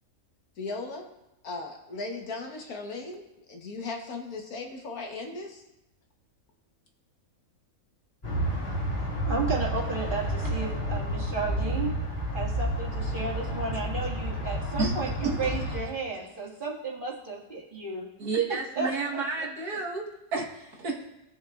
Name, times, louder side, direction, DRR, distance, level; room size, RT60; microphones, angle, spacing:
voice 1, 0.6-1.1 1.4-3.2 3.5-5.6, left 3 dB, 75° left, 2 dB, 1.6 m, -37 dB
sound 1, 8.2-15.8, equal, 30° left, 2.9 m, -30 dB
voice 2, 9.2-12.0 12.3-18.1 18.5-19.5, right 4 dB, 35° right, -4 dB, 2.0 m, -33 dB
voice 3, 18.2-20.0 20.3-21.0, right 4 dB, 90° right, -2 dB, 1.9 m, -30 dB
17.0 x 6.4 x 2.4 m, 0.91 s
omnidirectional pair, 1.6 m